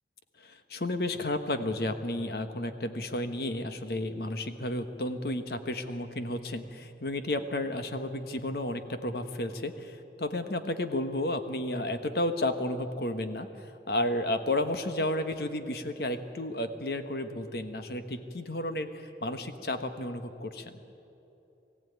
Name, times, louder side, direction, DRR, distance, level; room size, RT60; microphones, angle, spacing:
voice 1, 0.4-20.7, left 1 dB, 60° left, 8 dB, 1.2 m, -32 dB
22.0 x 15.0 x 9.4 m, 3.0 s
head